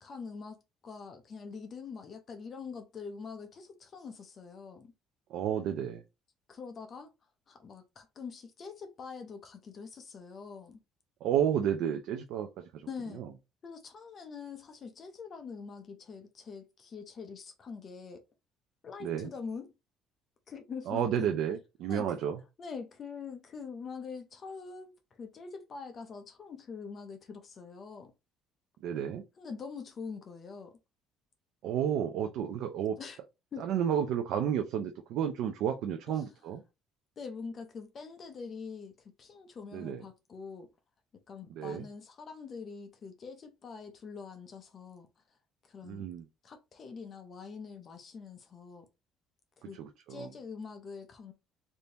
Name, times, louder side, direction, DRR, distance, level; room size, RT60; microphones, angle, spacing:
voice 1, 0.0-4.9 6.5-7.1 7.5-10.8 12.9-13.3 13.6-18.2 18.8-19.7 20.5-21.3 21.9-22.1 22.6-28.1 29.4-30.8 33.0-33.2 33.5-33.7 36.1-36.3 37.2-40.7 41.3-45.1 45.6-46.1 46.4-48.8 49.6-49.8 50.1-51.3, left 5 dB, 40° left, 0.6 m, -44 dB
voice 2, 5.3-6.0 11.2-12.8 13.1-13.3 19.0-19.3 20.9-22.4 28.8-29.2 31.6-33.0 33.6-36.6 39.7-40.0 41.6-41.8 45.8-46.2 49.8-50.3, right 9 dB, 75° right, 0.5 m, -31 dB
3.4 x 2.7 x 2.8 m
cardioid pair, 125°, 0 cm